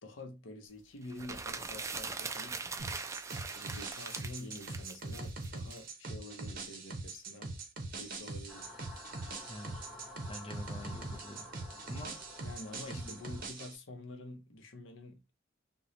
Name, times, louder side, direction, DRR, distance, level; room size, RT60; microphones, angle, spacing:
voice 1, 0.0-2.6 3.5-7.5 7.9-8.7 12.4-15.3, left 2 dB, 90° left, 0.7 m, -48 dB
sound 1, 1.1-5.8, right 4 dB, 15° right, 0.3 m, -41 dB
sound 2, 2.8-13.8, right 3 dB, 50° right, 0.9 m, -42 dB
sound 3, 8.5-13.5, left 1 dB, ahead, 0.8 m, -51 dB
voice 2, 9.5-9.8 10.3-11.5 11.9-12.1 12.9-13.2, left 1 dB, 30° left, 0.6 m, -46 dB
3.0 x 2.2 x 3.8 m
head